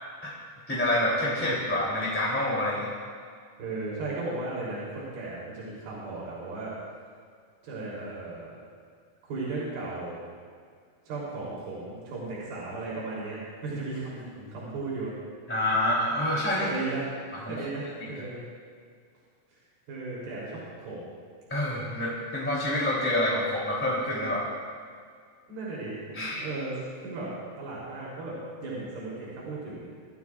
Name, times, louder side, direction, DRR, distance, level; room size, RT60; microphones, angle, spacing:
voice 1, 0.7-2.9 14.4-14.5 15.5-16.8 17.4-17.6 18.0-18.1 21.5-24.5 26.1-26.4, left 1 dB, 5° left, -6 dB, 2.6 m, -27 dB
voice 2, 3.6-6.7 7.6-8.6 9.2-10.2 11.1-14.2 14.5-15.1 16.6-17.1 17.5-18.5 19.5-19.6 19.9-21.1 25.5-26.7 27.0-29.9, right 3 dB, 80° right, -7 dB, 5.3 m, -36 dB
26.0 x 15.5 x 2.5 m, 2.1 s
omnidirectional pair, 4.3 m